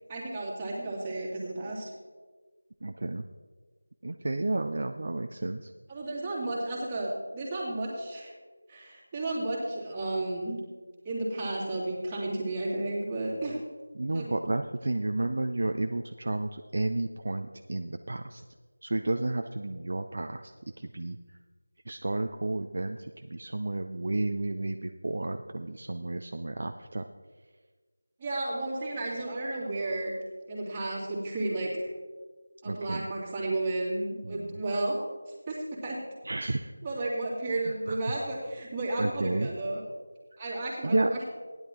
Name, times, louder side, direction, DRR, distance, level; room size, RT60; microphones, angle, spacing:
voice 1, 0.1-1.9 5.9-8.3 8.7-10.6 11.0-13.6 14.1-14.3 28.2-30.1 30.5-31.9 32.6-35.0 35.5-36.0 36.8-39.8 40.4-41.2, right 2 dB, 15° right, -6 dB, 2.5 m, -32 dB
voice 2, 2.8-3.2 4.0-5.7 14.0-18.4 18.8-21.2 21.9-27.0 32.6-33.1 34.2-34.6 36.2-36.7 37.7-38.0 39.0-39.5 40.8-41.1, right 2 dB, 50° right, 6 dB, 0.5 m, -32 dB
15.5 x 10.5 x 3.7 m, 1.4 s
figure-of-eight pair, 170°, 0 cm